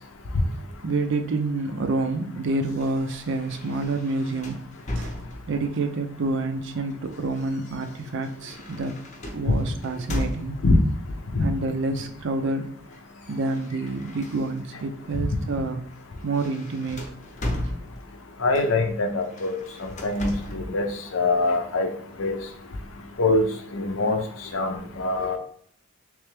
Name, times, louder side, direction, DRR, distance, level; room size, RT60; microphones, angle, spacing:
voice 1, 0.8-4.6 5.0-5.1 5.5-9.0 9.3-10.6 11.4-12.7 13.3-15.8 16.2-17.0, right 3 dB, 65° right, 7 dB, 0.5 m, -28 dB
sound 1, 2.6-5.7 6.7-10.9 11.9-12.3 12.6-14.9 15.3-15.5 15.9-18.3 19.2-20.7, left 1 dB, 35° left, 0.7 m, -36 dB
voice 2, 18.4-20.9 21.1-21.9 22.2-22.4 23.2-23.5 23.7-24.2 24.5-25.4, left 2 dB, 75° left, 5 dB, 0.6 m, -23 dB
3.4 x 3.3 x 3.3 m, 0.64 s
head